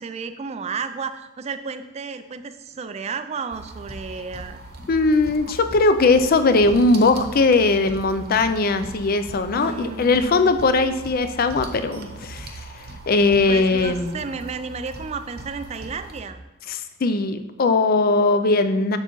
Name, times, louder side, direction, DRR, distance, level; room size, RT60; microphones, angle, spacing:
voice 1, 0.0-4.6 5.5-5.6 9.5-10.6 13.5-16.4, right 5 dB, 30° right, 11 dB, 0.3 m, -32 dB
sound 1, 3.5-16.2, right 2 dB, 45° right, 0.8 m, -39 dB
voice 2, 4.9-14.2 16.7-19.0, left 3 dB, 40° left, 10 dB, 0.4 m, -19 dB
6.8 x 6.6 x 3.0 m, 1.0 s
head